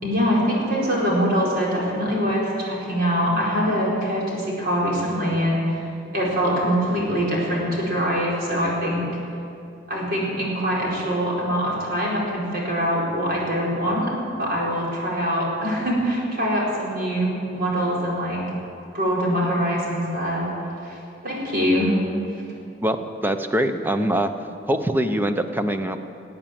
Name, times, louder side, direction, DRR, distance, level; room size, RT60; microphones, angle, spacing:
voice 1, 0.0-5.8 6.1-9.1 9.9-14.1 14.4-18.4 18.9-20.5 20.8-20.9 21.2-21.9, equal, 55° right, -4 dB, 4.7 m, -23 dB
voice 2, 22.8-24.3 24.7-26.0, right 1 dB, 10° right, 8 dB, 0.7 m, -23 dB
20.0 x 8.8 x 7.6 m, 2.6 s
head